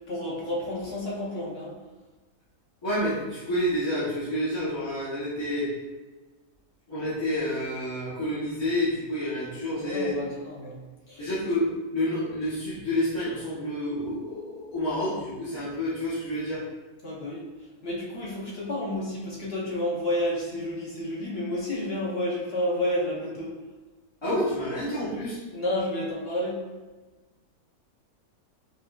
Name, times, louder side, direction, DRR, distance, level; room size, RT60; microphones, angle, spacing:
voice 1, 0.1-1.7 9.8-10.8 11.1-11.2 17.0-17.4 17.8-23.5 25.5-26.6, left 1 dB, 50° left, -5 dB, 1.0 m, -30 dB
voice 2, 2.8-5.7 6.9-10.3 11.2-11.7 11.9-16.6 24.2-25.4, left 1 dB, 25° left, -13 dB, 0.8 m, -29 dB
4.5 x 2.4 x 2.3 m, 1.2 s
omnidirectional pair, 1.5 m